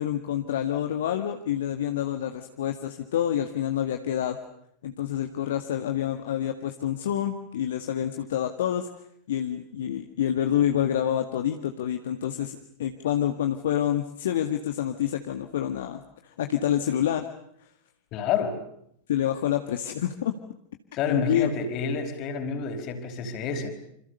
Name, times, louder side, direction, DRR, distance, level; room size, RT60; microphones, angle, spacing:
voice 1, 0.0-4.4 4.8-8.9 9.3-17.3 19.1-20.3 21.1-21.5, left 10 dB, 60° left, 5 dB, 1.8 m, -27 dB
voice 2, 18.1-18.6 20.9-23.7, left 5 dB, 40° left, 6 dB, 4.8 m, -29 dB
28.0 x 26.5 x 6.8 m, 0.71 s
figure-of-eight pair, 90°, 0 cm